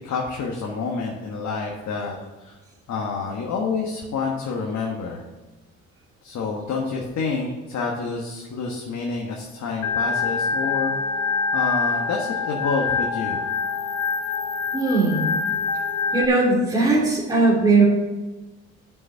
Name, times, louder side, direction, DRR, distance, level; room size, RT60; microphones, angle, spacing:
voice 1, 0.0-2.6 2.9-5.2 6.2-10.9 11.5-13.4, left 4 dB, 65° left, -1 dB, 1.5 m, -28 dB
Organ, 9.8-16.3, left 5 dB, 85° left, 0.9 m, -25 dB
voice 2, 14.7-15.3 16.1-17.8, right 3 dB, 15° right, -6 dB, 2.9 m, -19 dB
7.2 x 6.4 x 7.8 m, 1.1 s
cardioid pair, 90°, 30 cm